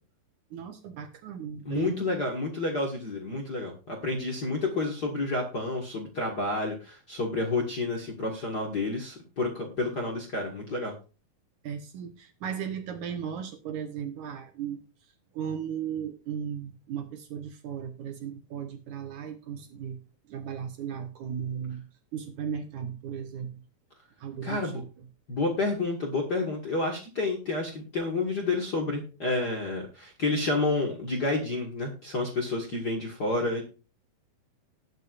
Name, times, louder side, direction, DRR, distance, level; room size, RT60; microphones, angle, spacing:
voice 1, 0.5-2.2 11.6-20.0 20.3-21.8 22.1-23.5 24.2-25.1, right 8 dB, 70° right, 6 dB, 2.1 m, -36 dB
voice 2, 1.6-10.9 24.4-24.8 25.3-33.6, left 2 dB, 40° left, 0 dB, 1.5 m, -30 dB
19.0 x 6.7 x 2.5 m, 0.34 s
omnidirectional pair, 4.2 m